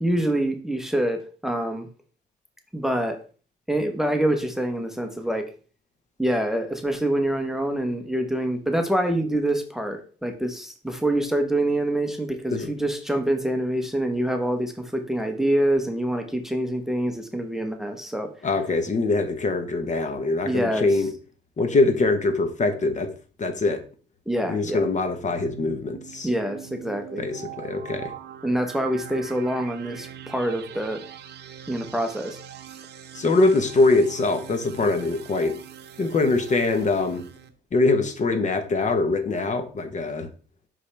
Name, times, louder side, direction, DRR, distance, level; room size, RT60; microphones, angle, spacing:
voice 1, 0.0-1.9 2.7-3.2 3.7-5.4 6.2-18.3 20.4-20.9 24.3-24.9 26.2-27.3 28.4-31.0 31.7-32.4, right 1 dB, ahead, 0.9 m, -26 dB
voice 2, 18.4-21.1 21.6-23.1 23.4-23.8 24.5-26.3 27.2-28.1 33.1-35.6 36.0-37.2 37.7-40.3, left 3 dB, 40° left, 1.0 m, -23 dB
sound 1, 24.9-37.5, right 9 dB, 60° right, 0.8 m, -42 dB
5.6 x 5.3 x 3.3 m
cardioid pair, 105°, 19 cm